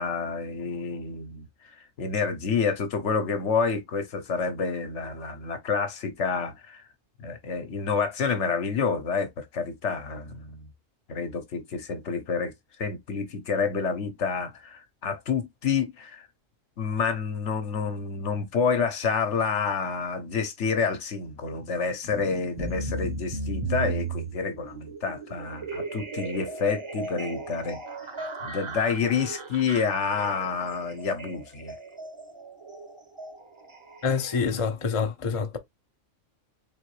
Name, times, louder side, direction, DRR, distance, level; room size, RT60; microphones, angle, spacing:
voice 1, 0.0-6.8 7.2-10.7 11.1-12.5 12.8-16.3 16.8-27.8 28.4-31.8, left 5 dB, 65° left, 1.1 m, -28 dB
sound 1, 22.0-34.7, right 3 dB, 25° right, 0.8 m, -36 dB
voice 2, 34.0-35.6, left 5 dB, 35° left, 0.6 m, -26 dB
3.8 x 3.6 x 3.1 m
omnidirectional pair, 1.4 m